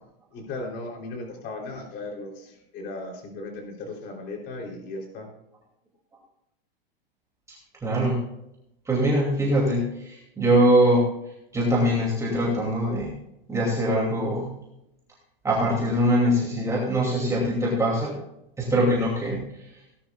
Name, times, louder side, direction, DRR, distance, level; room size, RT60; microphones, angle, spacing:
voice 1, 0.3-5.3, left 2 dB, 35° left, 1 dB, 3.3 m, -36 dB
voice 2, 7.8-8.2 8.9-11.1 11.5-13.1 13.5-14.5 15.4-18.1 18.6-19.7, equal, 10° right, -3 dB, 2.5 m, -22 dB
17.5 x 11.0 x 2.4 m, 0.84 s
supercardioid pair, 145°, 29 cm